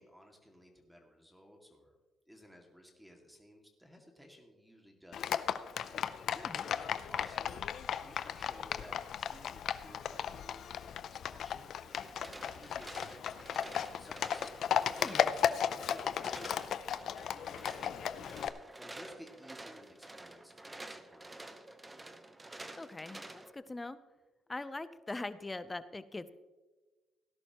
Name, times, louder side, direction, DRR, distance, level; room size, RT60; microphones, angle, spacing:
voice 1, 0.0-2.0 2.3-5.6 6.1-7.7 8.0-15.3 15.7-16.8 17.0-21.6, equal, 5° right, 2 dB, 2.2 m, -57 dB
Livestock farm animals working animals, 5.1-18.5, left 9 dB, 70° left, 0.6 m, -35 dB
sound 1, 11.9-23.5, right 2 dB, 20° right, 1.0 m, -50 dB
voice 2, 22.8-24.0 24.5-26.3, left 2 dB, 20° left, 14 dB, 0.7 m, -42 dB
17.5 x 11.0 x 3.0 m, 1.2 s
cardioid pair, 90°, 0 cm